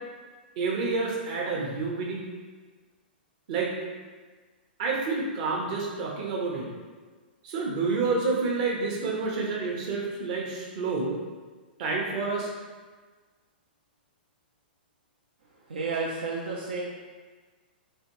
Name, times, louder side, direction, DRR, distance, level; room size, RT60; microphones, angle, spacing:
voice 1, 0.6-2.2 3.5-3.7 4.8-6.7 7.4-11.2 11.8-12.5, right 4 dB, 50° right, -2 dB, 0.8 m, -29 dB
voice 2, 15.7-16.8, right 4 dB, 75° right, -4 dB, 0.5 m, -31 dB
3.3 x 2.9 x 3.0 m, 1.4 s
hypercardioid pair, 110°, 5 cm